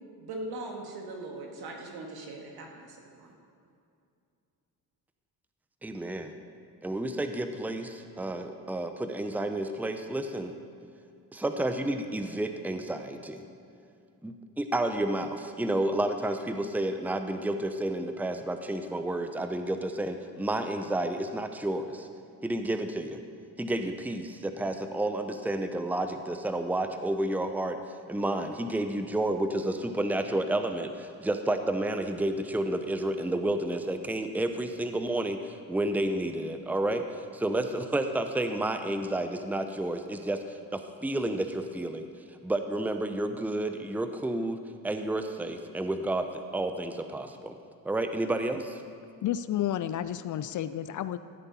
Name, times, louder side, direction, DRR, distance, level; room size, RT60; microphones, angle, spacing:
voice 1, 0.2-3.3, right 2 dB, 70° right, 0 dB, 2.1 m, -40 dB
voice 2, 5.8-6.3 6.8-10.6 11.3-13.4 14.2-22.1 22.4-23.2 23.6-27.8 28.1-42.1 42.4-44.6 44.8-46.3 46.5-47.5 47.8-48.8, right 1 dB, 5° right, 7 dB, 0.7 m, -30 dB
voice 3, 49.2-51.2, left 11 dB, 50° left, 13 dB, 0.5 m, -31 dB
14.5 x 7.9 x 4.3 m, 2.5 s
supercardioid pair, 70°, 39 cm